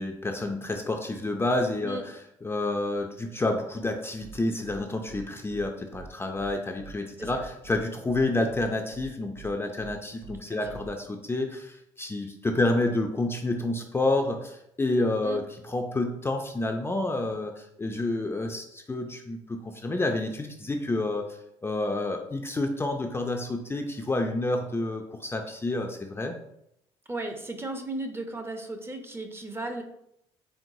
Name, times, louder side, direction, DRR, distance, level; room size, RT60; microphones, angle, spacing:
voice 1, 0.0-2.1 2.4-21.2 21.6-26.3, left 2 dB, 20° left, 3 dB, 0.5 m, -29 dB
sound 1, 4.2-4.3 4.6-4.8 5.1-5.2 5.5-5.6 5.9-6.0 6.3-6.5 6.8-6.9 7.2-7.8 8.1-8.2 8.5-8.6 8.9-9.0 9.3-9.5 9.8-9.9 10.2-10.3 10.6-10.9, right 6 dB, 80° right, 0.7 m, -45 dB
voice 2, 10.5-10.8 15.2-15.4 27.1-29.8, right 2 dB, 20° right, 5 dB, 0.7 m, -35 dB
4.6 x 3.5 x 2.7 m, 0.78 s
supercardioid pair, 70°, 13 cm